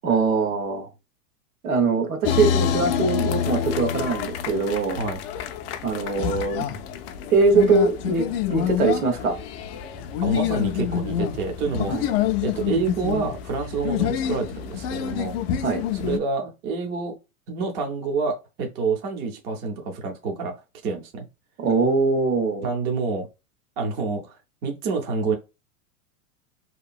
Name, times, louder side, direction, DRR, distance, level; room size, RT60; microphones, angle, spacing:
voice 1, 0.0-0.9 1.6-5.0 5.8-6.6 7.3-9.4 11.9-12.0 15.6-15.8 21.6-22.6, right 4 dB, 80° right, 1.3 m, -22 dB
sound 1, 2.2-16.2, left 9 dB, 45° left, 0.4 m, -27 dB
voice 2, 10.2-11.9 12.4-15.4 15.9-17.2 17.5-20.6 20.8-21.3 22.6-23.3 23.8-25.4, right 4 dB, 25° right, 0.5 m, -28 dB
2.8 x 2.6 x 2.3 m
hypercardioid pair, 130°, 43 cm